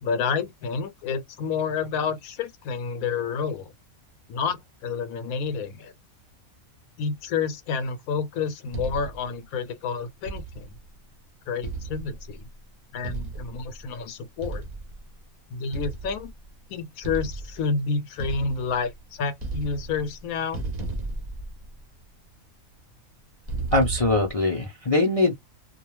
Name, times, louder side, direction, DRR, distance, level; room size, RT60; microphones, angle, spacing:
voice 1, 0.0-3.7 4.3-5.9 7.0-10.7 11.5-12.4 12.9-14.6 15.5-16.3 16.7-20.6, left 5 dB, 75° left, 1.0 m, -29 dB
sound 1, 8.7-9.3 10.3-10.8 11.6-12.4 13.0-13.8 14.4-15.0 15.7-16.5 17.0-17.7 18.2-19.0 19.3-20.2 20.5-22.0 23.5-24.4, right 3 dB, 35° right, 0.8 m, -34 dB
voice 2, 23.7-25.4, left 2 dB, 45° left, 0.4 m, -22 dB
2.4 x 2.3 x 3.0 m
omnidirectional pair, 1.5 m